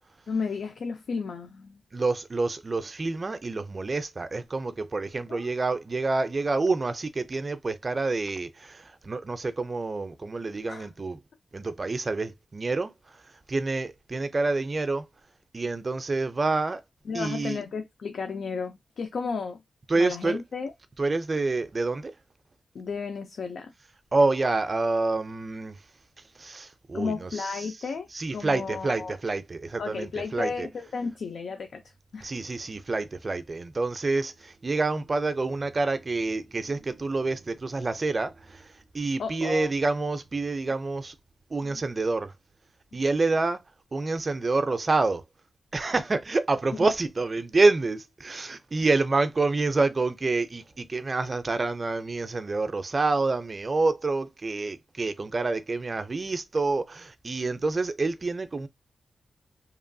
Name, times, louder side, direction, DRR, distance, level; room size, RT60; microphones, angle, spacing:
voice 1, 0.3-1.8 5.3-5.5 10.7-10.9 17.1-19.6 19.9-20.7 22.7-23.7 26.9-29.2 29.8-31.8 32.1-32.3 39.2-39.7 41.7-41.8 42.9-43.0 46.8-46.9, left 5 dB, 80° left, 0.4 m, -33 dB
voice 2, 1.9-11.2 11.5-13.2 13.5-15.1 15.5-16.8 17.1-17.6 19.9-20.4 21.0-22.1 24.1-25.8 26.4-27.7 28.1-30.7 32.2-41.2 41.5-42.3 42.9-43.6 43.9-45.2 45.7-58.7, right 3 dB, 35° right, 0.4 m, -27 dB
2.9 x 2.2 x 2.6 m
wide cardioid pair, 125°, 0 cm